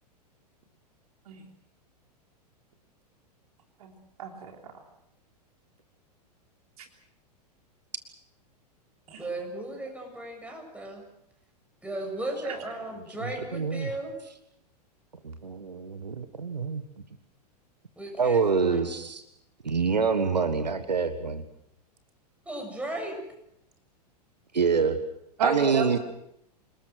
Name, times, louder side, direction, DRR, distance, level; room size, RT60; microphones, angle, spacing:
voice 1, 4.2-4.7 6.8-6.9 9.1-9.3 12.4-12.5 25.4-26.0, right 7 dB, 60° right, 4 dB, 3.4 m, -31 dB
voice 2, 9.2-11.0 11.8-14.1 18.0-18.9 22.5-23.2, right 1 dB, 5° right, 2 dB, 7.2 m, -36 dB
voice 3, 13.2-13.9 15.2-16.8 18.2-19.2 19.6-21.4 24.5-25.0 25.4-26.0, right 5 dB, 80° right, 10 dB, 1.6 m, -26 dB
27.5 x 20.0 x 6.3 m, 0.77 s
figure-of-eight pair, 100°, 21 cm